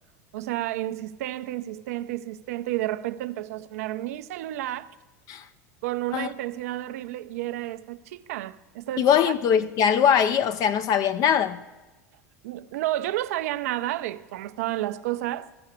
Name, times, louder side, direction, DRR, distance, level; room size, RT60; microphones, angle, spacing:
voice 1, 0.3-4.9 5.8-9.3 12.4-15.5, right 15 dB, 65° right, 0.5 m, -31 dB
voice 2, 9.0-11.6, left 8 dB, 45° left, 0.5 m, -21 dB
14.5 x 6.4 x 8.3 m
hypercardioid pair, 85°, 9 cm